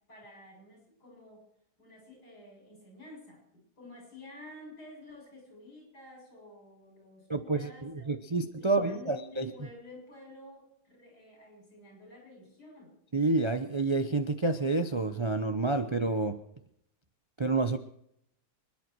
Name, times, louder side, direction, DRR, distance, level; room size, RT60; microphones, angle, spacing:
voice 1, 0.1-1.4 1.8-13.0, left 1 dB, 75° left, -1 dB, 7.5 m, -51 dB
voice 2, 7.3-9.5 13.1-16.4 17.4-17.8, right 3 dB, 30° right, 8 dB, 0.5 m, -29 dB
25.5 x 10.5 x 4.6 m, 0.76 s
omnidirectional pair, 1.7 m